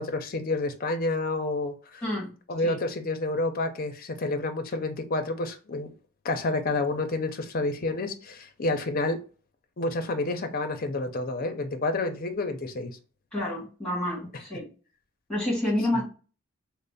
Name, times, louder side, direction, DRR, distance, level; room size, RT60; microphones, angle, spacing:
voice 1, 0.0-2.0 2.5-5.9 6.2-9.2 9.8-12.9, left 2 dB, 40° left, 0.5 m, -29 dB
voice 2, 2.0-2.3 2.6-2.8 13.3-14.7 15.3-16.1, left 1 dB, 5° left, 1.6 m, -28 dB
3.2 x 2.0 x 3.8 m
head